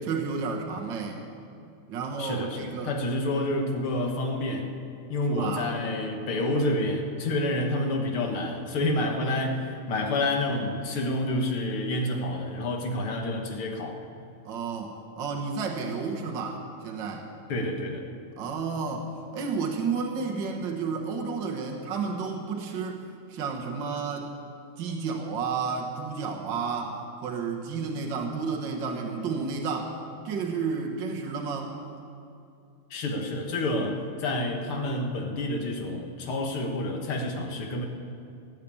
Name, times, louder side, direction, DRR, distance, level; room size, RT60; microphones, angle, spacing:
voice 1, 0.1-1.2 1.9-2.9 5.3-5.7 14.5-17.3 18.4-23.0 23.3-24.3 24.8-30.0 30.2-31.8, right 5 dB, 60° right, 1 dB, 1.9 m, -31 dB
voice 2, 2.2-4.7 5.1-14.0 17.5-18.1 32.9-37.9, left 1 dB, 85° left, 2 dB, 2.3 m, -28 dB
17.0 x 8.5 x 8.5 m, 2.6 s
omnidirectional pair, 2.3 m